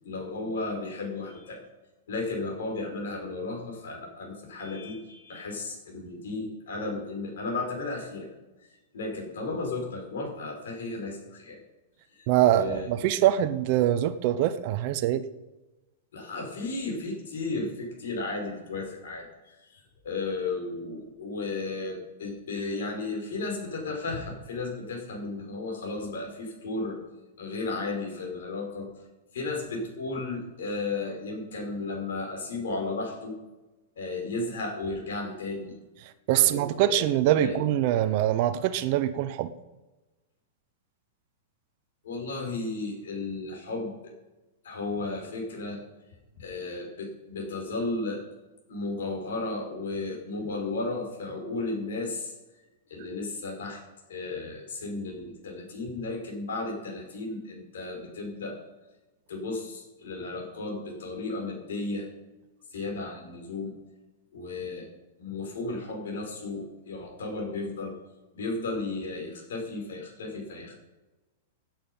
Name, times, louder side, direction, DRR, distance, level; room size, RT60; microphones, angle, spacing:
voice 1, 0.0-1.6 2.1-8.3 8.9-11.6 12.1-12.9 16.1-19.3 20.0-27.0 27.4-28.9 29.3-33.4 34.0-35.8 36.3-37.0 37.4-37.6 42.0-44.1 44.6-45.8 46.4-48.2 48.7-52.3 52.9-53.8 54.1-58.6 59.3-62.1 62.7-63.7 64.3-64.9 65.2-67.9 68.3-70.8, left 3 dB, 80° left, 1 dB, 5.5 m, -34 dB
voice 2, 12.3-15.2 36.3-39.5, right 12 dB, 35° right, 10 dB, 0.7 m, -24 dB
16.5 x 8.8 x 5.6 m, 1.1 s
supercardioid pair, 175°, 0 cm